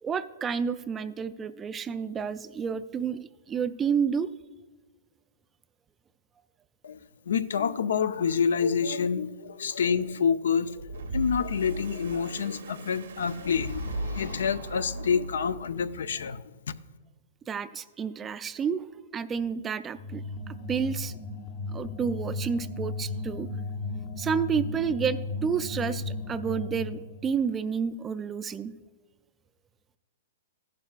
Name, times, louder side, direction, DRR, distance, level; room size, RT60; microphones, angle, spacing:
voice 1, 0.0-3.2 3.5-4.3 17.5-21.1 21.7-23.5 24.0-28.7, right 6 dB, 15° right, 13 dB, 0.4 m, -30 dB
voice 2, 7.3-16.8, left 6 dB, 85° left, 13 dB, 0.5 m, -28 dB
sound 1, 10.6-15.9, right 2 dB, 85° right, 1.0 m, -37 dB
sound 2, 19.9-27.3, left 3 dB, 45° left, 0.9 m, -35 dB
14.5 x 11.5 x 2.4 m, 1.3 s
hypercardioid pair, 155°, 0 cm